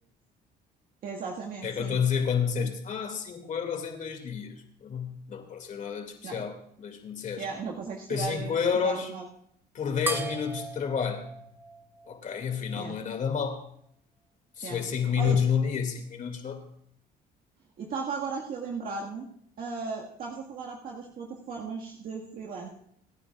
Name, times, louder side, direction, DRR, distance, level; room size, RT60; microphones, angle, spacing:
voice 1, 1.0-2.0 2.6-2.7 6.2-6.4 7.4-8.6 8.8-9.3 12.8-13.0 14.6-14.8 15.2-15.4 17.8-19.3 19.6-22.7, right 5 dB, 60° right, -2 dB, 1.8 m, -36 dB
voice 2, 1.6-7.5 8.1-9.1 9.7-11.3 12.1-13.6 14.6-16.7, left 7 dB, 50° left, 5 dB, 2.4 m, -30 dB
sound 1, 10.1-12.9, right 2 dB, 10° right, 0.9 m, -38 dB
27.5 x 9.8 x 2.4 m, 0.66 s
cardioid pair, 110°, 17 cm